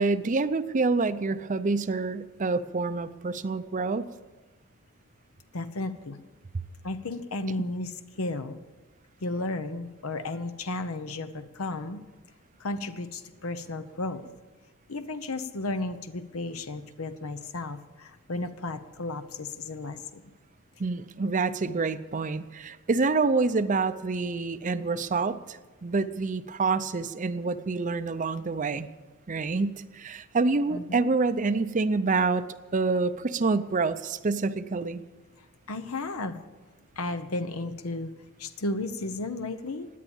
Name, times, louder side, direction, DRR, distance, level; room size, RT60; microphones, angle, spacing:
voice 1, 0.0-4.1 20.8-28.9 29.3-32.4 32.7-35.0, right 3 dB, 35° right, 12 dB, 0.5 m, -27 dB
voice 2, 5.5-6.2 6.8-8.6 9.2-12.0 12.6-14.3 14.9-20.2 30.7-31.1 35.7-36.4 37.0-38.1 38.4-39.9, left 2 dB, 80° left, 10 dB, 0.9 m, -34 dB
17.0 x 10.0 x 7.1 m, 1.2 s
head